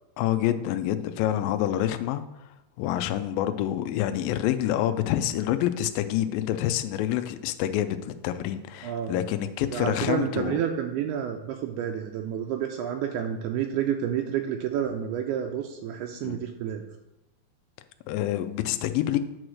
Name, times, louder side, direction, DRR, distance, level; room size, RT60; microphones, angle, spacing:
voice 1, 0.2-2.2 2.8-10.6 16.2-16.4 18.1-19.2, left 12 dB, 85° left, 9 dB, 2.1 m, -27 dB
voice 2, 8.8-9.3 9.6-16.8, right 9 dB, 85° right, 3 dB, 2.4 m, -30 dB
8.8 x 4.7 x 6.3 m, 0.93 s
omnidirectional pair, 4.7 m